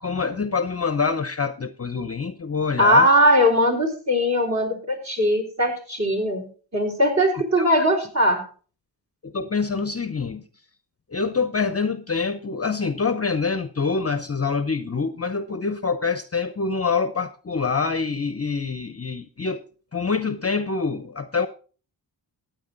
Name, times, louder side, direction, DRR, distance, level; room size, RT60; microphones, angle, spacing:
voice 1, 0.0-3.1 7.6-7.7 9.2-10.4 11.1-19.6 19.9-21.5, left 5 dB, 30° left, 11 dB, 0.8 m, -25 dB
voice 2, 2.8-6.5 6.7-8.5, equal, 35° right, 1 dB, 4.1 m, -20 dB
14.5 x 9.1 x 4.0 m, 0.40 s
cardioid pair, 65°, 46 cm